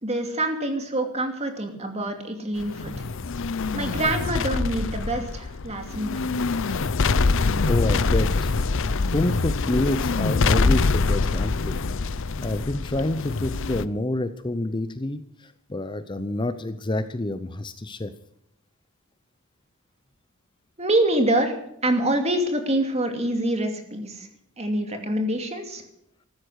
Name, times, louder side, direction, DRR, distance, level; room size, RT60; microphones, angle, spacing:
voice 1, 0.0-2.9 3.7-6.2 20.8-21.6 21.8-24.3 24.6-25.8, right 1 dB, 30° right, 5 dB, 2.6 m, -25 dB
sound 1, 2.6-13.8, left 3 dB, 60° left, 0.7 m, -24 dB
voice 2, 7.6-8.5 9.1-11.8 12.4-18.1, left 1 dB, 20° left, 11 dB, 0.7 m, -28 dB
15.0 x 13.0 x 6.4 m, 0.76 s
head